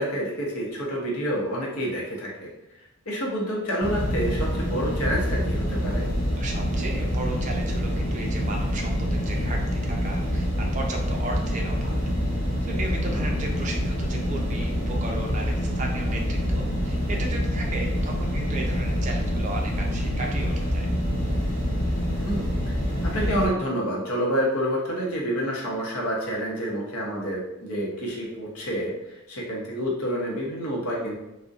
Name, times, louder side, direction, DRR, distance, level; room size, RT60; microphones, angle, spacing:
voice 1, 0.0-2.5 3.1-6.0 13.1-13.4 22.2-22.5 23.0-31.1, equal, 90° left, -3 dB, 0.7 m, -28 dB
sound 1, 3.8-23.5, equal, 55° left, 0.8 m, -26 dB
voice 2, 6.4-11.9 12.7-20.9, right 2 dB, 35° right, 1 dB, 0.3 m, -35 dB
2.6 x 2.0 x 2.3 m, 0.93 s
head